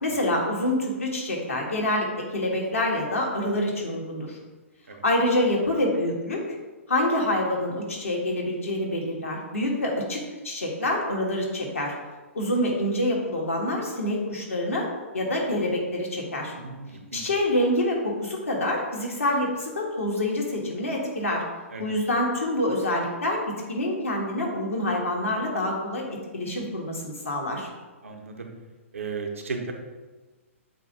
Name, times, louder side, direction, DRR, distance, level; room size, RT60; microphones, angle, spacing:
voice 1, 0.0-4.4 5.0-6.4 6.9-11.9 12.3-14.9 15.1-16.5 17.1-21.4 21.8-27.7, left 1 dB, 75° left, -1 dB, 1.6 m, -26 dB
voice 2, 16.5-17.3 21.7-21.8 28.0-28.5 28.9-29.7, right 4 dB, 70° right, 3 dB, 1.0 m, -35 dB
7.8 x 2.6 x 4.9 m, 1.3 s
figure-of-eight pair, 120°, 7 cm